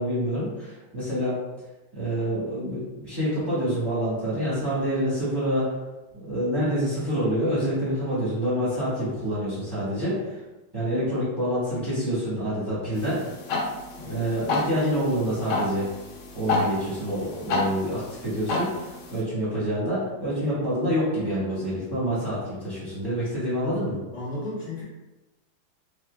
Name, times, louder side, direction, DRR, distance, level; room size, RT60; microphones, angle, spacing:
voice 1, 0.0-1.4 1.9-5.8 6.1-10.4 10.7-13.2 14.0-15.9 16.3-24.0, equal, 15° right, -11 dB, 1.0 m, -27 dB
sound 1, 13.0-19.2, left 2 dB, 80° left, 1.5 m, -30 dB
voice 2, 24.1-24.8, left 1 dB, 40° left, -13 dB, 1.4 m, -35 dB
4.4 x 2.6 x 2.3 m, 1.1 s
omnidirectional pair, 2.4 m